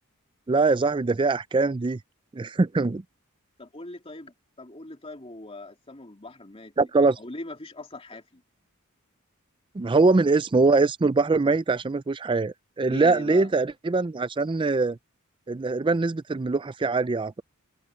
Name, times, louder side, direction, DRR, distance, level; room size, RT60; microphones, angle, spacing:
voice 1, 0.5-2.0 2.3-3.0 6.8-7.2 9.8-15.0 15.5-17.4, right 3 dB, 20° right, 0.4 m, -23 dB
voice 2, 3.6-6.9 7.2-8.4 12.9-13.6, left 1 dB, 25° left, 3.1 m, -41 dB
head